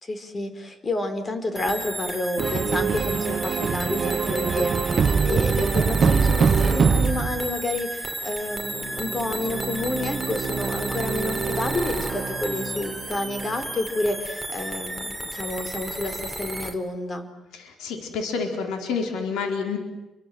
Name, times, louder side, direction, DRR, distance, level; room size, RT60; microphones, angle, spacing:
voice 1, 0.0-17.3, left 2 dB, 30° left, 9 dB, 4.6 m, -29 dB
sound 1, 1.6-16.7, right 1 dB, ahead, 3.8 m, -32 dB
sound 2, 2.4-7.6 8.7-13.6, right 6 dB, 45° right, 1.0 m, -25 dB
voice 2, 17.5-19.8, left 5 dB, 85° left, 4 dB, 4.5 m, -28 dB
30.0 x 24.5 x 7.9 m, 1.0 s
cardioid pair, 90°, 0 cm